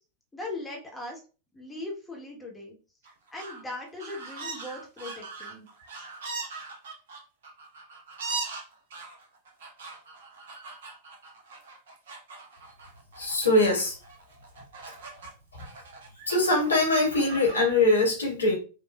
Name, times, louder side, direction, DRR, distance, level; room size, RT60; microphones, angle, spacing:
voice 1, 0.3-1.2 1.5-2.7 3.1-5.7, left 2 dB, 10° left, -1 dB, 1.1 m, -39 dB
sound 1, 3.0-3.6 4.0-15.3 15.6-17.6, right 4 dB, 60° right, 0.9 m, -40 dB
voice 2, 13.2-14.0 15.5-15.6 16.3-18.5, left 2 dB, 75° left, 0 dB, 1.4 m, -23 dB
5.2 x 2.4 x 2.2 m, 0.35 s
figure-of-eight pair, 90°, 0 cm